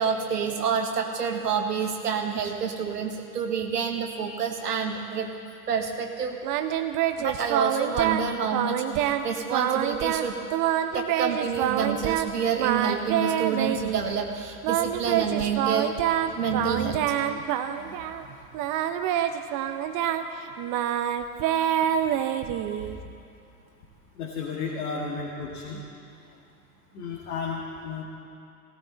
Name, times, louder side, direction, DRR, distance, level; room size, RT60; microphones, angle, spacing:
voice 1, 0.0-5.3 5.7-6.4 7.2-10.4 10.9-17.4 17.8-18.0 21.8-22.0, right 6 dB, 85° right, 3 dB, 1.5 m, -28 dB
Singing, 6.4-8.3 8.5-9.2 9.5-12.3 12.6-14.0 14.6-18.2 18.5-23.0, right 11 dB, 45° right, 0.9 m, -26 dB
voice 2, 24.2-25.8 26.9-28.0, left 4 dB, 70° left, -4 dB, 2.2 m, -33 dB
17.5 x 14.0 x 4.1 m, 2.6 s
hypercardioid pair, 85°, 46 cm